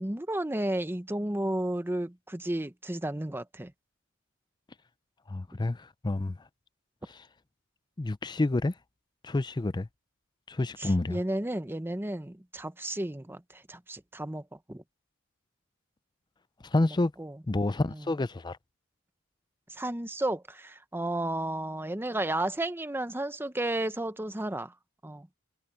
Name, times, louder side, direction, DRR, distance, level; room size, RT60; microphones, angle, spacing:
voice 1, 0.0-3.7 10.8-14.8 17.2-17.3 17.9-18.0 19.7-24.7 25.0-25.3, right 1 dB, 10° right, 0.9 m, -33 dB
voice 2, 5.3-6.5 7.1-7.3 8.0-8.7 9.2-9.9 10.5-11.2 16.6-17.1 17.5-18.6, left 2 dB, 20° left, 0.5 m, -29 dB
head